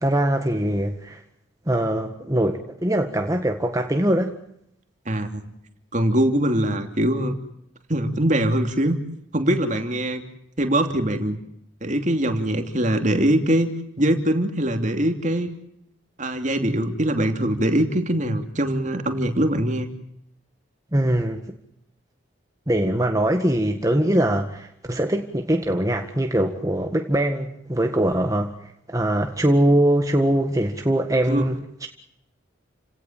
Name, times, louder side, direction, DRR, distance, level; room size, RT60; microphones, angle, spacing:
voice 1, 0.0-1.2 1.7-4.4 20.9-21.4 22.7-31.9, right 1 dB, 15° right, 1.8 m, -22 dB
voice 2, 5.1-5.4 5.9-7.3 7.9-9.0 9.3-10.2 10.6-11.4 11.8-15.5 16.2-19.9 31.3-31.4, right 1 dB, 40° right, 2.9 m, -22 dB
30.0 x 18.0 x 7.5 m
head